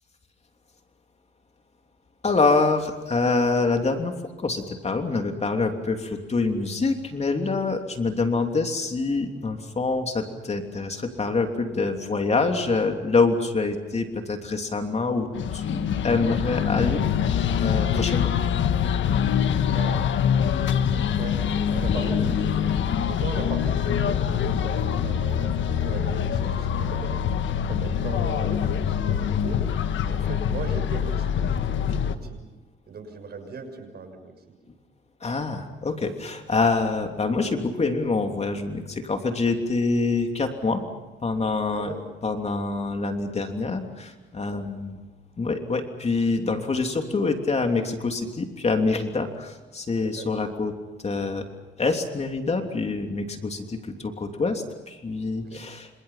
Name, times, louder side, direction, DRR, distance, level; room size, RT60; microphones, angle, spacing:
voice 1, 2.2-18.3 35.2-40.8 41.2-41.9 42.2-45.0 45.4-50.7 51.0-51.4 51.8-55.9, left 3 dB, 35° left, 4 dB, 3.1 m, -26 dB
sound 1, 15.3-32.2, left 8 dB, 70° left, 1.6 m, -24 dB
voice 2, 19.7-20.1 20.9-27.2 27.7-29.6 30.0-32.4 32.9-34.5 41.7-42.1 44.3-44.6 50.0-50.3 52.6-52.8 55.3-55.6, right 4 dB, 55° right, 6 dB, 6.3 m, -38 dB
28.5 x 27.0 x 5.8 m, 1.1 s
cardioid pair, 90°, 20 cm